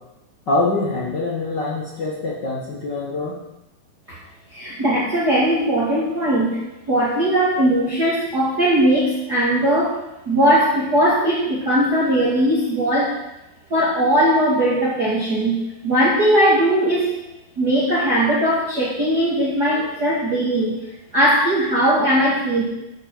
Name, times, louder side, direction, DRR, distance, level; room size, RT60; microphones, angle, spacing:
voice 1, 0.5-3.4, left 2 dB, 85° left, -4 dB, 0.9 m, -24 dB
voice 2, 4.5-10.0 10.3-13.1 13.7-15.6 15.8-17.2 17.6-20.8 21.1-22.6, right 1 dB, 35° right, -7 dB, 1.9 m, -19 dB
9.9 x 7.5 x 6.1 m, 0.94 s
omnidirectional pair, 4.5 m